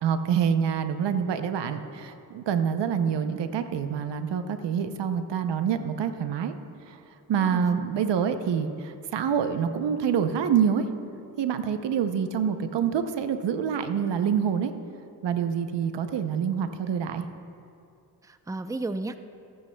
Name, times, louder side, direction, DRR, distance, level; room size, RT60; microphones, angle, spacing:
voice 1, 0.0-6.5 6.8-7.0 7.3-10.9 11.4-14.7 15.2-17.3, right 7 dB, 85° right, 9 dB, 0.7 m, -26 dB
voice 2, 7.4-7.9 18.2-19.2, right 2 dB, 10° right, 9 dB, 0.5 m, -33 dB
24.0 x 8.7 x 2.2 m, 2.5 s
cardioid pair, 40°, 41 cm